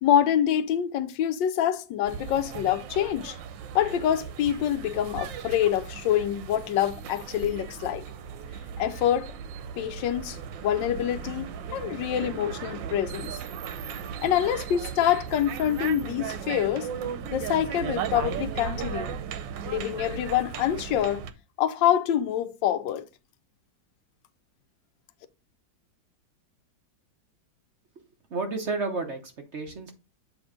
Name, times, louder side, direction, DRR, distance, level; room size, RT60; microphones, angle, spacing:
voice 1, 0.0-3.4 3.7-8.0 8.8-9.3 9.8-13.4 14.2-16.9 17.3-19.2 19.7-21.2 21.6-23.1, left 10 dB, 80° left, 1.3 m, -26 dB
sound 1, 2.0-21.3, right 8 dB, 90° right, 1.4 m, -37 dB
voice 2, 28.3-29.9, right 3 dB, 45° right, 1.1 m, -31 dB
7.9 x 3.0 x 5.0 m
omnidirectional pair, 2.0 m